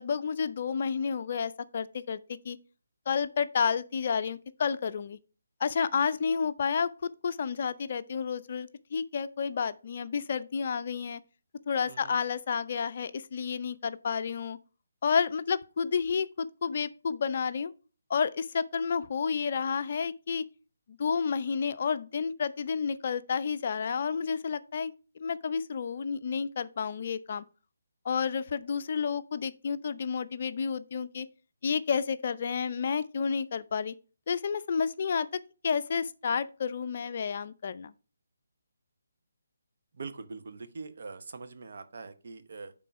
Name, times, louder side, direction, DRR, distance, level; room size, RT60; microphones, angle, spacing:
voice 1, 0.0-2.6 3.1-5.2 5.6-11.2 11.7-14.6 15.0-17.7 18.1-20.4 20.9-27.4 28.0-31.3 31.6-33.9 34.3-35.3 35.6-37.9, left 6 dB, 45° left, 0.4 m, -30 dB
voice 2, 11.9-12.2 39.9-42.7, right 4 dB, 55° right, 0.9 m, -43 dB
9.1 x 3.7 x 4.6 m
figure-of-eight pair, 150°, 0 cm